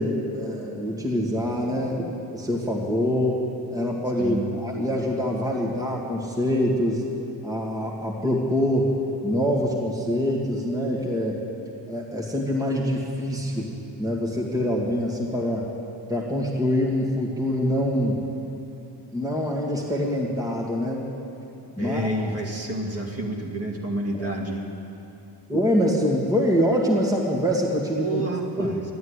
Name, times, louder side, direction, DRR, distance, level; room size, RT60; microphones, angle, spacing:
voice 1, 0.0-2.1 2.3-7.0 7.4-8.9 9.2-11.4 11.9-15.7 16.1-18.2 19.1-21.0 21.8-22.1 24.1-24.3 25.5-28.2 28.6-28.8, equal, 10° right, -4 dB, 2.0 m, -25 dB
voice 2, 4.2-4.6 21.8-24.7 28.0-28.8, right 1 dB, 30° right, -2 dB, 2.4 m, -29 dB
12.5 x 12.0 x 9.7 m, 2.8 s
cardioid pair, 125°, 46 cm